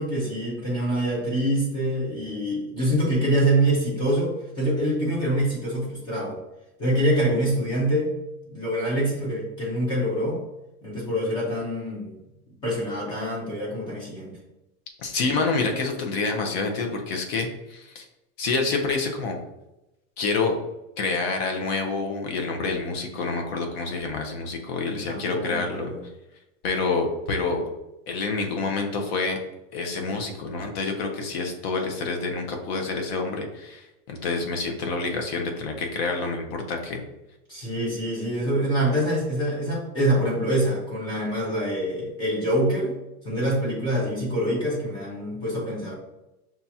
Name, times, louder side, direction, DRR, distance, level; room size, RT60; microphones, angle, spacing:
voice 1, 0.0-6.4 6.8-8.1 8.5-10.4 10.8-12.2 12.6-14.4 24.9-26.0 37.5-42.9 43.2-45.9, right 1 dB, 10° left, -5 dB, 0.5 m, -25 dB
voice 2, 15.0-18.0 18.4-19.4 20.2-20.6 21.0-25.9 26.6-27.7 28.1-29.4 29.7-37.0, left 3 dB, 45° left, 3 dB, 0.7 m, -27 dB
5.6 x 2.4 x 2.7 m, 0.94 s
supercardioid pair, 170°, 43 cm